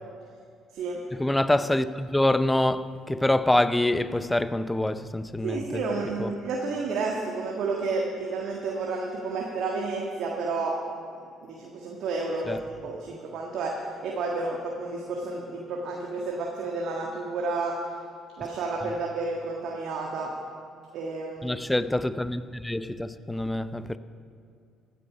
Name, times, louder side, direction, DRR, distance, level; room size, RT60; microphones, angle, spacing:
voice 1, 1.1-5.7 6.2-6.3 12.5-12.6 21.4-24.0, left 1 dB, 10° left, 0.6 m, -25 dB
voice 2, 5.4-10.8 11.4-17.8 18.4-20.3 20.9-21.6, right 3 dB, 65° right, 1.6 m, -31 dB
15.5 x 11.0 x 5.0 m
hypercardioid pair, 55°, 0 cm